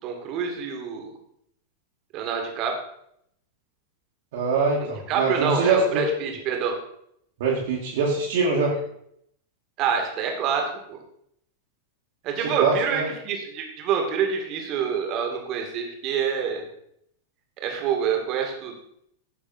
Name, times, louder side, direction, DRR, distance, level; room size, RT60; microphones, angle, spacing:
voice 1, 0.0-1.1 2.1-2.8 5.1-6.8 9.8-11.0 12.2-16.6 17.6-18.8, right 7 dB, 40° right, 3 dB, 2.7 m, -27 dB
voice 2, 4.3-6.0 7.4-8.7 12.4-13.1, right 4 dB, 55° right, -4 dB, 2.7 m, -23 dB
15.0 x 6.9 x 4.6 m, 0.71 s
figure-of-eight pair, 90°, 0 cm